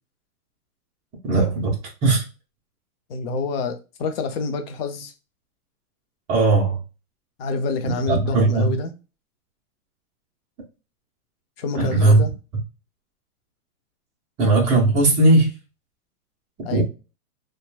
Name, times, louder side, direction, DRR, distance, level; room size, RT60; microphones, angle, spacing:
voice 1, 1.2-2.2 6.3-6.8 8.1-8.7 11.7-12.2 14.4-15.5 16.7-16.8, right 2 dB, 15° right, 0.5 m, -18 dB
voice 2, 3.1-5.1 7.4-8.9 11.6-12.3 16.6-16.8, left 3 dB, 45° left, 0.6 m, -27 dB
2.9 x 2.2 x 2.2 m
hypercardioid pair, 135°, 44 cm